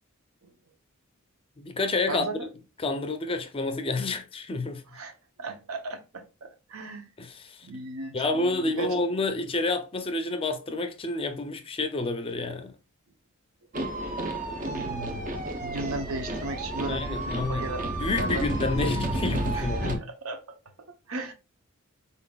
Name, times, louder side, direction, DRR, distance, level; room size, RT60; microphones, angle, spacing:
voice 1, 1.6-2.2 2.8-4.8 7.2-7.7 8.1-12.7 16.9-17.7 18.0-20.0, left 3 dB, 25° left, 0.5 m, -29 dB
voice 2, 2.1-2.5 4.9-5.1 5.4-7.1 7.6-9.0 14.6-15.3 15.6-18.8 19.5-21.3, right 2 dB, 70° right, 0.7 m, -37 dB
sound 1, 13.7-20.0, right 1 dB, 35° right, 0.6 m, -31 dB
4.0 x 3.8 x 2.3 m
head